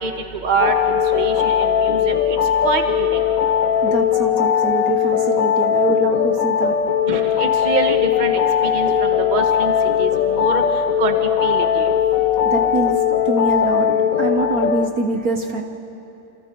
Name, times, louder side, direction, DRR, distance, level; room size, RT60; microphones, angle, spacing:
voice 1, 0.0-2.4 2.6-3.2 7.1-9.7 10.0-10.6 11.0-11.1 11.4-11.9, right 4 dB, 25° right, 5 dB, 1.5 m, -25 dB
sound 1, 0.6-14.9, left 8 dB, 55° left, 1.2 m, -19 dB
voice 2, 3.8-6.8 12.4-12.9 13.2-13.9 14.2-15.6, right 2 dB, 60° right, 5 dB, 1.5 m, -23 dB
28.0 x 27.0 x 4.6 m, 2.9 s
omnidirectional pair, 1.9 m